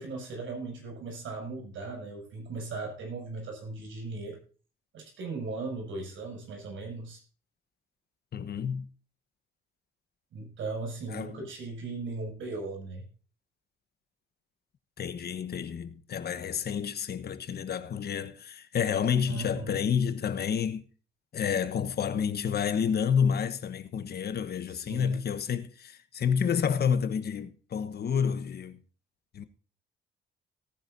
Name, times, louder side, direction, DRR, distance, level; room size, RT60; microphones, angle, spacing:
voice 1, 0.0-4.4 4.9-7.2 10.3-13.1 19.3-19.8 24.8-25.2, right 3 dB, 75° right, 7.3 m, -38 dB
voice 2, 8.3-8.9 11.1-11.4 15.0-20.8 21.3-28.8 29.3-29.4, left 7 dB, 55° left, 1.2 m, -29 dB
18.5 x 9.9 x 2.7 m
cardioid pair, 90°, 20 cm